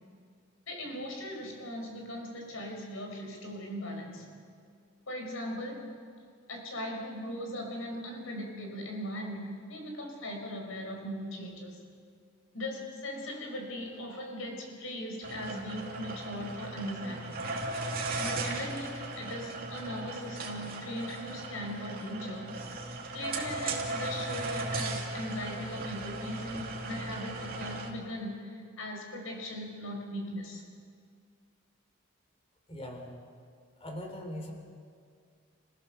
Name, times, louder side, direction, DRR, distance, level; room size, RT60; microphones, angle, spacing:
voice 1, 0.7-4.3 5.1-6.0 6.5-11.8 12.5-17.4 18.2-22.6 23.1-30.6, left 1 dB, 85° left, 2 dB, 4.9 m, -39 dB
sound 1, 15.2-27.9, right 2 dB, 45° right, 2.6 m, -37 dB
voice 2, 32.7-33.1 33.8-34.5, left 1 dB, 30° left, 3 dB, 3.5 m, -40 dB
29.5 x 16.0 x 6.9 m, 2.1 s
head